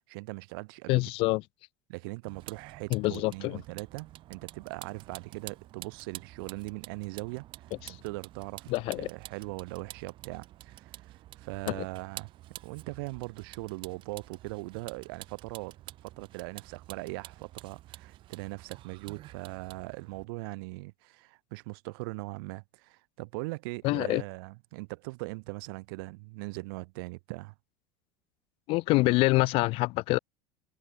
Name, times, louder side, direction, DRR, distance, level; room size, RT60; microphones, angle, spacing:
voice 1, 0.1-1.0 1.9-7.4 7.8-12.3 12.6-15.7 16.0-27.5, right 27 dB, 75° right, 6.8 m, -40 dB
voice 2, 0.9-1.4 2.9-3.6 7.8-8.0 8.7-9.1 11.7-11.8 23.8-24.2 28.7-30.2, left 22 dB, 50° left, 0.4 m, -26 dB
Vehicle, 2.3-20.2, right 15 dB, 45° right, 3.0 m, -49 dB
cardioid pair, 150°, 12 cm